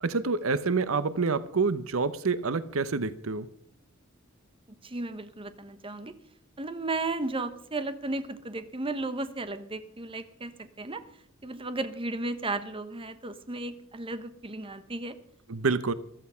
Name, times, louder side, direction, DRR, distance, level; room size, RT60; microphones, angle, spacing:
voice 1, 0.0-3.5 15.5-15.9, right 4 dB, 85° right, 0.8 m, -27 dB
voice 2, 4.8-6.1 6.6-11.0 11.4-15.2, right 2 dB, 25° right, 1.1 m, -34 dB
14.5 x 13.0 x 5.7 m
head